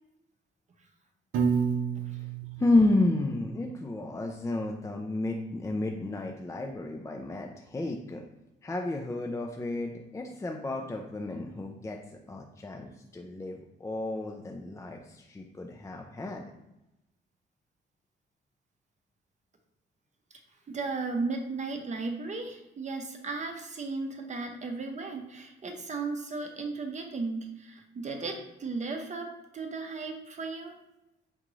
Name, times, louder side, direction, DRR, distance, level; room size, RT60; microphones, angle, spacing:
Piano, 1.3-3.5, right 6 dB, 90° right, 0.7 m, -30 dB
voice 1, 2.6-8.2 8.6-12.0 12.3-16.5, left 2 dB, 15° left, 1 dB, 0.4 m, -31 dB
voice 2, 20.7-29.3 29.5-30.7, right 3 dB, 35° right, 3 dB, 0.6 m, -35 dB
3.7 x 3.6 x 3.1 m, 0.92 s
cardioid pair, 90°, 20 cm